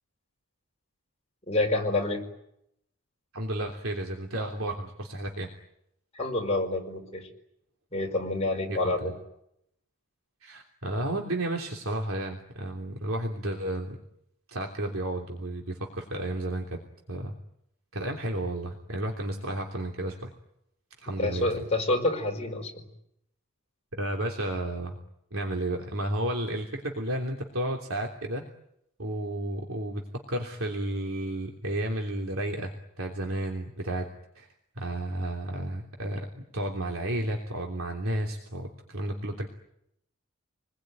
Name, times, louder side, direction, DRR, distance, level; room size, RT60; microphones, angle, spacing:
voice 1, 1.5-2.2 6.1-7.3 7.9-9.1 21.2-22.9, left 2 dB, 30° left, 1 dB, 5.1 m, -28 dB
voice 2, 3.3-5.5 8.7-9.1 10.4-14.0 14.5-16.8 17.1-17.3 17.9-20.3 21.0-21.6 23.9-25.0 25.3-28.4 29.0-30.0 30.3-34.1 34.3-34.5 34.8-39.5, right 1 dB, 75° right, 1 dB, 3.2 m, -32 dB
29.0 x 21.0 x 9.4 m, 0.80 s
head